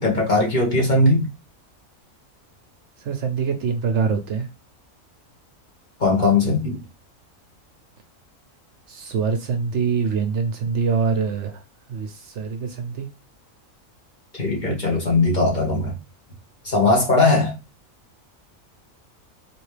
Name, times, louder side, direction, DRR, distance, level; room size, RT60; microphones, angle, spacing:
voice 1, 0.0-1.3 6.0-6.8 14.4-15.9 16.6-17.5, left 2 dB, 35° left, 1.4 m, -19 dB
voice 2, 3.0-4.5 8.9-11.6 11.9-13.1, right 5 dB, 65° right, 0.9 m, -24 dB
4.1 x 2.9 x 3.2 m
omnidirectional pair, 1.4 m